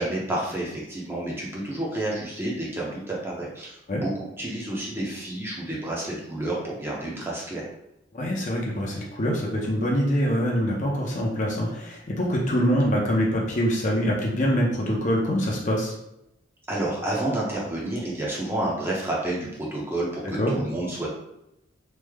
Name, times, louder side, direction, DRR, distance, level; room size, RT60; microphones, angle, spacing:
voice 1, 0.0-7.6 16.7-21.1, right 1 dB, 10° right, -5 dB, 0.6 m, -30 dB
voice 2, 8.1-15.9 20.4-20.5, equal, 40° left, -2 dB, 0.6 m, -24 dB
3.1 x 2.1 x 3.4 m, 0.85 s
head